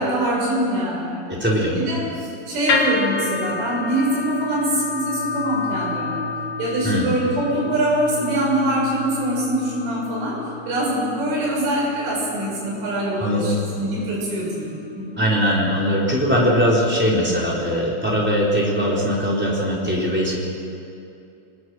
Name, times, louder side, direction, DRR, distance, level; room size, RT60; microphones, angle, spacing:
voice 1, 0.0-1.4 1.8-6.2 6.6-15.2, right 1 dB, 75° right, -4 dB, 9.0 m, -24 dB
voice 2, 1.3-1.8 6.8-7.1 13.2-13.6 15.2-20.4, equal, ahead, -4 dB, 3.5 m, -20 dB
sound 1, 2.7-18.9, left 4 dB, 50° left, 2.3 m, -31 dB
25.5 x 20.0 x 6.4 m, 2.6 s
omnidirectional pair, 5.6 m